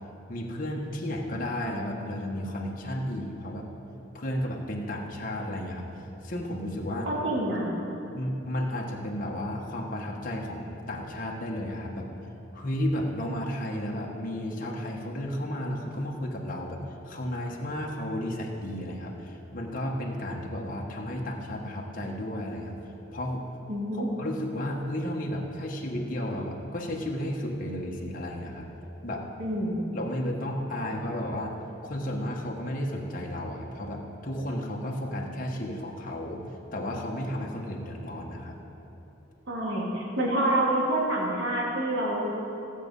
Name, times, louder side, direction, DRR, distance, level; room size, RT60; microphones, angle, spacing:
voice 1, 0.3-3.7 4.1-5.9 6.2-7.1 8.1-12.1 12.5-16.8 17.1-22.8 23.1-23.4 23.9-28.7 29.0-29.3 29.9-31.6 31.8-38.6, left 1 dB, 45° left, -1 dB, 1.3 m, -33 dB
voice 2, 7.0-7.7 23.7-24.1 29.4-29.8 39.5-42.3, right 1 dB, 75° right, -5 dB, 3.2 m, -27 dB
16.0 x 7.5 x 5.4 m, 2.9 s
head